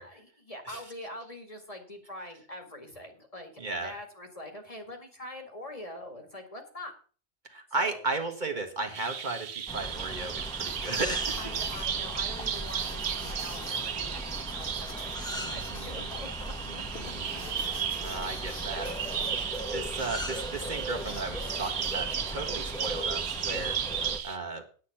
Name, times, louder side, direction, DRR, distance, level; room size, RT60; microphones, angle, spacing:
voice 1, 0.0-6.9 7.8-8.0 11.4-18.1 18.7-19.1, left 1 dB, 30° left, 4 dB, 2.0 m, -44 dB
voice 2, 3.6-3.9 7.4-11.4 15.3-16.1 16.7-17.3 18.0-18.8 19.7-23.7 24.2-24.6, right 3 dB, 45° right, 2 dB, 1.7 m, -35 dB
Bird vocalization bird call bird song, 8.9-24.4, right 8 dB, 70° right, 1.0 m, -35 dB
sound 1, 9.7-24.2, equal, 5° left, 1.4 m, -38 dB
sound 2, 10.6-23.4, left 3 dB, 55° left, 1.9 m, -49 dB
9.4 x 8.5 x 5.8 m, 0.40 s
omnidirectional pair, 1.1 m